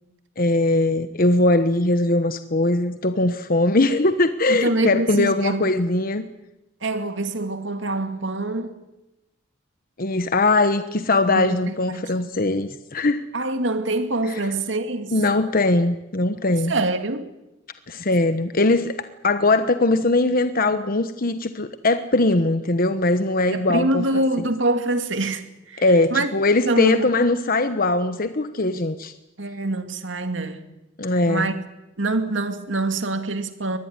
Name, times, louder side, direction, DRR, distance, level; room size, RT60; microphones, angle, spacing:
voice 1, 0.4-6.2 10.0-13.2 14.3-14.4 15.1-16.7 17.9-19.0 19.2-24.2 25.8-29.1 31.0-31.5, left 2 dB, 50° left, 1.2 m, -20 dB
voice 2, 4.5-5.7 6.8-8.8 11.3-11.6 11.9-12.3 13.3-15.2 16.7-17.3 23.5-25.8 26.1-26.3 26.6-27.1 29.4-30.6 31.3-31.6 32.0-33.8, right 2 dB, 75° right, 2.4 m, -25 dB
24.0 x 19.5 x 9.7 m
head